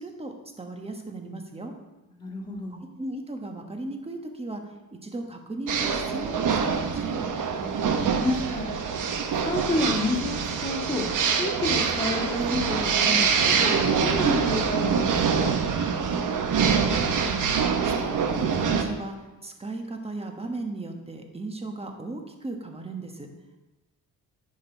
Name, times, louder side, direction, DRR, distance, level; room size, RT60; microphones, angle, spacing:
voice 1, 0.0-1.7 3.0-7.3 17.0-17.4 17.8-23.3, right 2 dB, 15° right, 4 dB, 1.2 m, -36 dB
voice 2, 2.2-2.8 7.6-8.7 9.4-11.0 11.4-13.7 14.0-15.5, left 2 dB, 10° left, -6 dB, 1.9 m, -30 dB
sound 1, 5.7-18.8, right 6 dB, 55° right, 1.0 m, -25 dB
10.0 x 5.5 x 4.5 m, 1.1 s
cardioid pair, 110°, 36 cm